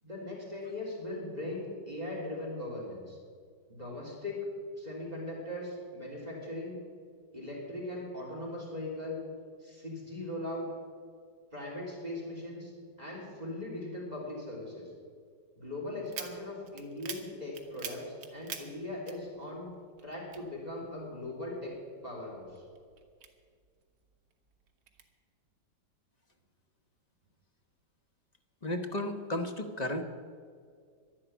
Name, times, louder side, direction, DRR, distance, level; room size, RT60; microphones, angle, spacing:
voice 1, 0.0-3.2 3.7-4.5 4.8-6.8 7.3-9.2 9.6-10.7 11.5-12.7 13.0-14.9 15.6-19.7 20.0-21.7 22.0-22.6, left 1 dB, 20° right, -3 dB, 3.5 m, -39 dB
sound 1, 16.1-19.7 20.0-21.3 21.7-23.8 24.3-25.1, right 7 dB, 70° right, 1.8 m, -44 dB
voice 2, 28.6-30.0, left 1 dB, 30° left, 4 dB, 0.9 m, -33 dB
11.5 x 11.5 x 9.3 m, 2.1 s
omnidirectional pair, 1.9 m